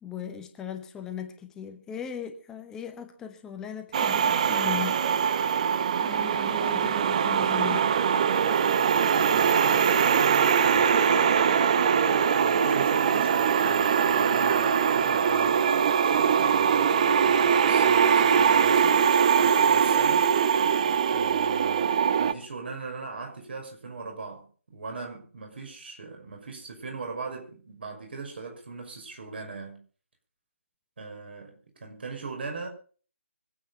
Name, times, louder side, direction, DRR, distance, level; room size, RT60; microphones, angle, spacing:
voice 1, 0.0-5.0 6.0-7.8, left 8 dB, 10° left, 1.0 m, -38 dB
sound 1, 3.9-22.3, right 7 dB, 30° right, 0.8 m, -22 dB
voice 2, 8.9-11.6 11.9-19.1 19.4-20.3 21.1-24.5 24.7-29.8 31.0-32.7, right 4 dB, 45° right, 5.9 m, -40 dB
24.5 x 8.7 x 5.6 m
figure-of-eight pair, 145°, 7 cm